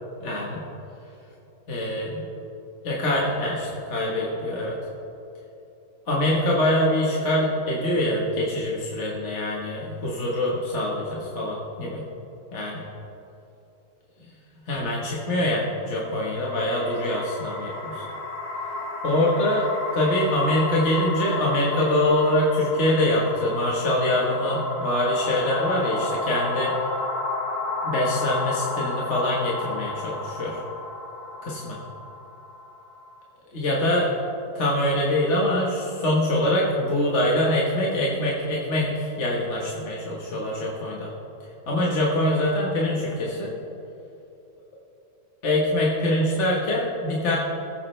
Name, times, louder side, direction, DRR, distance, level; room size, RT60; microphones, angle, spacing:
voice 1, 0.2-0.6 1.7-2.2 2.8-4.8 6.1-12.1 12.5-12.8 14.2-14.3 14.7-18.0 19.0-26.7 27.8-30.6 31.4-31.8 33.5-34.1 34.5-41.1 41.7-43.5 45.4-47.4, left 1 dB, 50° left, -4 dB, 1.6 m, -24 dB
sound 1, 16.0-33.2, left 3 dB, 80° left, 1.7 m, -32 dB
19.5 x 7.9 x 3.3 m, 3.0 s
omnidirectional pair, 1.6 m